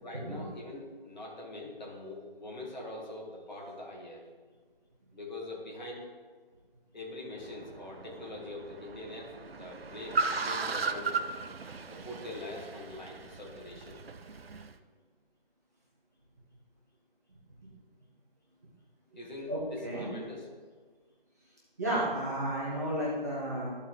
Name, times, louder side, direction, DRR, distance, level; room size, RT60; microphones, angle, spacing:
voice 1, 0.0-4.2 5.1-6.1 6.9-11.2 11.9-14.0 19.1-20.5, left 2 dB, 50° left, -2 dB, 2.2 m, -43 dB
Car, 7.3-14.7, right 4 dB, 80° right, 0.7 m, -37 dB
voice 2, 19.5-20.1 21.8-23.7, right 1 dB, 15° right, -7 dB, 1.0 m, -32 dB
13.5 x 4.5 x 3.9 m, 1.5 s
figure-of-eight pair, 170°, 30 cm